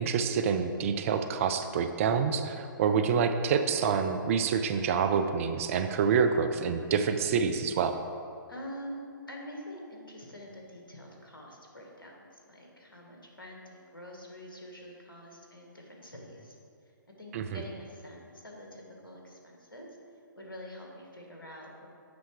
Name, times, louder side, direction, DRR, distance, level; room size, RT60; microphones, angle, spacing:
voice 1, 0.0-8.0 17.3-17.6, right 6 dB, 40° right, 8 dB, 0.5 m, -27 dB
voice 2, 8.5-9.0 9.3-16.5 17.2-19.9 20.3-21.9, equal, 85° left, -1 dB, 1.8 m, -46 dB
8.2 x 5.7 x 4.9 m, 2.4 s
figure-of-eight pair, 125°, 11 cm